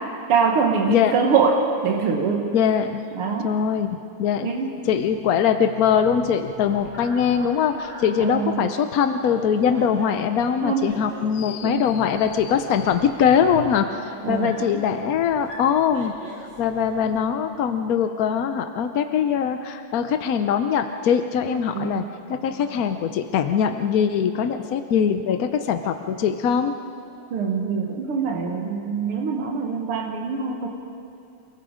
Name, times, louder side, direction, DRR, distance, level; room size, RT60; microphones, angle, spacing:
voice 1, 0.3-2.5 3.2-3.5 4.4-4.7 8.2-8.6 10.6-10.9 11.6-11.8 14.2-14.8 21.7-22.0 27.3-30.7, right 5 dB, 85° right, 0 dB, 2.3 m, -23 dB
voice 2, 0.9-1.2 2.5-3.0 3.4-4.5 4.8-16.1 16.6-26.7, left 7 dB, 70° left, 8 dB, 0.8 m, -22 dB
sound 1, 6.2-10.5, right 1 dB, 15° right, 3.4 m, -44 dB
sound 2, 9.2-17.2, right 1 dB, 55° right, 3.2 m, -42 dB
28.5 x 19.0 x 5.0 m, 2.5 s
omnidirectional pair, 2.4 m